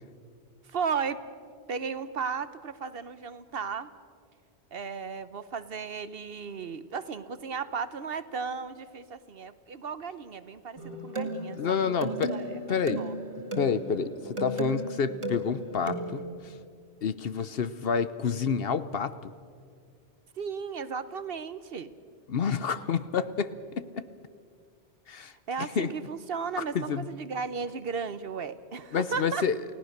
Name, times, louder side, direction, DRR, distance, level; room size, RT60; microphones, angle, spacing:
voice 1, 0.7-1.2 1.7-3.9 4.7-13.2 20.4-21.9 25.5-29.4, right 5 dB, 55° right, 13 dB, 1.0 m, -35 dB
sound 1, 10.8-16.2, right 1 dB, 25° right, 2.2 m, -35 dB
voice 2, 11.6-12.3 12.7-13.1 13.6-16.2 17.0-19.3 22.3-23.5 23.9-24.0 25.1-25.3 25.6-25.9 26.6-27.1 28.9-29.5, left 6 dB, 60° left, 14 dB, 0.9 m, -29 dB
29.5 x 17.5 x 6.6 m, 2.2 s
omnidirectional pair, 1.2 m